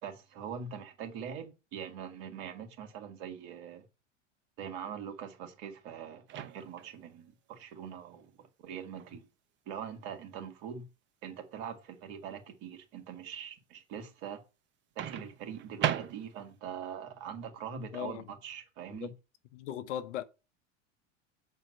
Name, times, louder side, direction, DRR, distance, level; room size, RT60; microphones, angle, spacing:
voice 1, 0.0-3.8 4.6-9.3 9.7-10.9 11.2-14.4 15.0-19.1, right 7 dB, 55° right, 2.4 m, -43 dB
Microwave oven, 6.3-7.0 9.0-9.2 15.0-16.6, right 10 dB, 30° right, 0.8 m, -36 dB
voice 2, 17.9-18.2 18.9-19.1 19.5-20.2, left 11 dB, 70° left, 1.0 m, -38 dB
7.6 x 4.4 x 6.7 m
hypercardioid pair, 100°, 37 cm